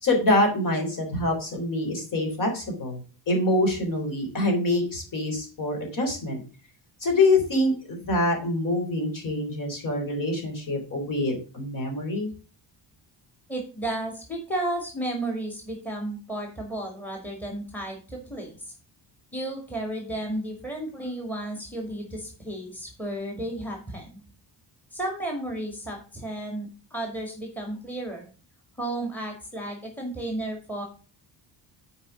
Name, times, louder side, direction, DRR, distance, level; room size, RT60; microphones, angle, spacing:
voice 1, 0.0-3.0 3.3-6.4 7.0-12.3, left 2 dB, 45° left, 2 dB, 3.5 m, -25 dB
voice 2, 13.5-18.7 19.3-24.2 24.9-28.3 28.8-30.8, right 1 dB, 5° left, 1 dB, 2.0 m, -33 dB
7.3 x 4.9 x 6.8 m, 0.36 s
cardioid pair, 145°, 44 cm